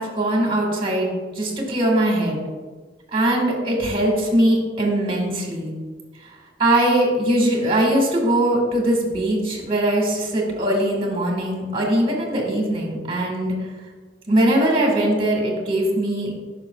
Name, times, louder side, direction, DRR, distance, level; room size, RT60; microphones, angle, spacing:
voice 1, 0.0-2.4 3.1-5.7 6.6-13.5 14.3-16.3, right 1 dB, 30° right, 0 dB, 1.6 m, -21 dB
9.6 x 5.9 x 2.3 m, 1.4 s
head